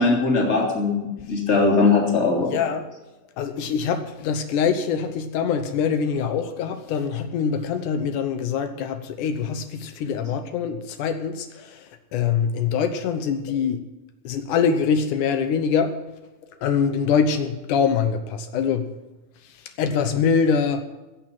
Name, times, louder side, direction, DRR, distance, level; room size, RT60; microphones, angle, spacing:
voice 1, 0.0-2.5, left 3 dB, 20° left, 0 dB, 3.0 m, -20 dB
voice 2, 2.5-2.9 3.4-13.8 14.2-16.0 16.6-18.9 19.4-20.8, left 6 dB, 80° left, 8 dB, 2.5 m, -24 dB
16.0 x 7.5 x 8.8 m, 1.1 s
omnidirectional pair, 3.5 m